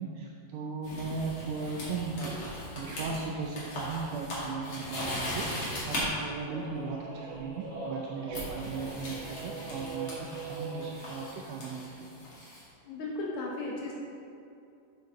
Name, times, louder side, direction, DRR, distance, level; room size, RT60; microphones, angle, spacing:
voice 1, 0.0-5.6 5.9-12.1, right 4 dB, 80° right, -1 dB, 1.5 m, -37 dB
sound 1, 0.8-6.0 7.3-7.5 8.3-12.6, left 1 dB, 40° left, 2.5 m, -39 dB
sound 2, 6.4-11.1, right 4 dB, 55° right, 2.7 m, -41 dB
voice 2, 12.8-13.9, left 2 dB, 85° left, -3 dB, 1.2 m, -35 dB
8.1 x 7.2 x 3.9 m, 2.6 s
omnidirectional pair, 3.7 m